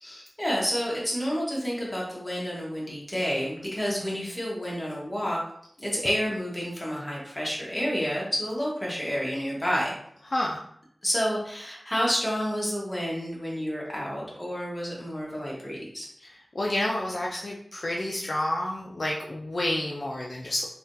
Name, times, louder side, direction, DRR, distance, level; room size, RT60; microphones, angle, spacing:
voice 1, 0.0-5.4 5.8-10.0 11.0-16.1, equal, 20° left, -4 dB, 1.2 m, -29 dB
voice 2, 10.3-10.7 16.2-20.7, left 1 dB, 60° left, -2 dB, 0.4 m, -30 dB
3.5 x 2.3 x 2.6 m, 0.67 s
wide cardioid pair, 65°, 0 cm